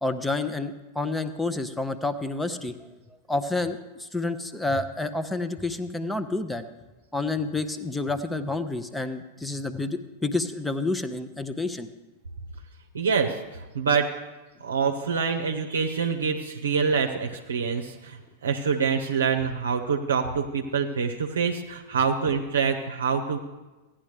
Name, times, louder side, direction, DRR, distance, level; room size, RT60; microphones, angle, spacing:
voice 1, 0.0-2.7 3.3-6.6 7.1-11.9, left 2 dB, 5° left, 10 dB, 0.7 m, -29 dB
voice 2, 12.9-14.1 14.6-23.4, right 6 dB, 75° right, 3 dB, 0.7 m, -26 dB
15.5 x 9.9 x 3.3 m, 1.1 s
figure-of-eight pair, 95°, 0 cm